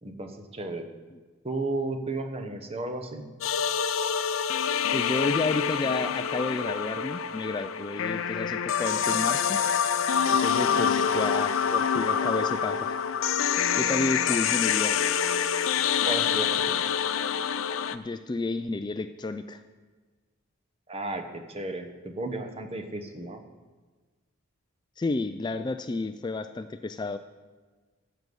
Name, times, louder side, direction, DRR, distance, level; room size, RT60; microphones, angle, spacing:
voice 1, 0.0-0.9 1.4-3.3 10.7-11.3 14.3-14.4 16.0-16.8 20.9-23.4, right 2 dB, 30° right, 7 dB, 1.0 m, -34 dB
sound 1, 3.4-18.0, left 7 dB, 85° left, 0.5 m, -26 dB
voice 2, 4.9-9.6 10.3-13.0 13.8-15.0 17.9-19.6 25.0-27.2, left 3 dB, 20° left, 10 dB, 0.3 m, -31 dB
14.5 x 7.8 x 5.4 m, 1.4 s
head